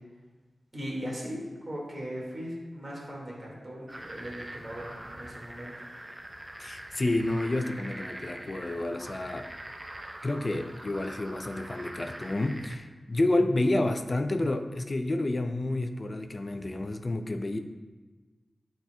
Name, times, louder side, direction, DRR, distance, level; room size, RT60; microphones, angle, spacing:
voice 1, 0.7-5.7, equal, 40° right, -4 dB, 2.0 m, -38 dB
sound 1, 3.9-12.8, right 1 dB, 25° right, 0.6 m, -43 dB
voice 2, 6.6-9.5 10.2-17.6, left 2 dB, 40° left, 7 dB, 0.5 m, -29 dB
10.5 x 4.4 x 2.3 m, 1.3 s
wide cardioid pair, 85°, 0 cm